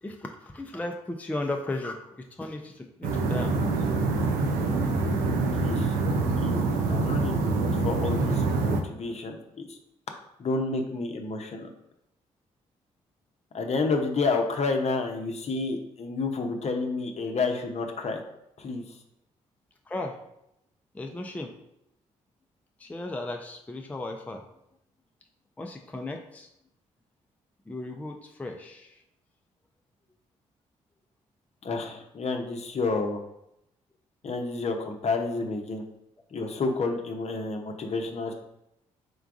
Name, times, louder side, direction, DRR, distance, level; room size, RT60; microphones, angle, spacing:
voice 1, 0.0-3.9 19.9-20.2 20.9-21.5 22.8-24.5 25.6-26.5 27.7-29.0, left 2 dB, 10° left, 3 dB, 0.5 m, -36 dB
sound 1, 3.0-8.8, right 3 dB, 85° right, 0.5 m, -25 dB
voice 2, 5.6-5.9 6.4-6.6 6.9-9.8 10.4-11.7 13.5-18.2 18.6-18.8 31.6-33.2 34.2-35.8 36.3-38.3, left 3 dB, 45° left, 3 dB, 0.7 m, -30 dB
3.8 x 3.4 x 2.5 m, 0.82 s
supercardioid pair, 50°, 15 cm